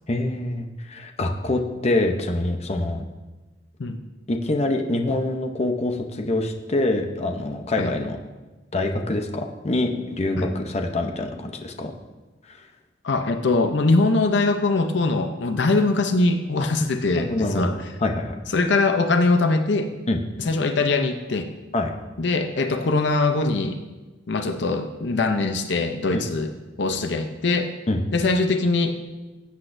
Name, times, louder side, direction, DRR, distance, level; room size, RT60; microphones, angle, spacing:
voice 1, 0.1-3.0 4.3-8.2 8.7-11.9 12.5-12.6 16.6-16.7 17.2-17.7 18.0-18.4 20.1-20.2 21.7-21.9 26.1-26.3 27.9-28.0, left 2 dB, 35° left, 4 dB, 0.8 m, -25 dB
voice 2, 13.0-17.7 18.5-19.9 20.4-21.5 22.2-23.8 24.3-26.5 26.8-27.7 28.1-28.9, left 3 dB, 70° left, 7 dB, 0.6 m, -22 dB
15.5 x 8.2 x 2.6 m, 1.2 s
head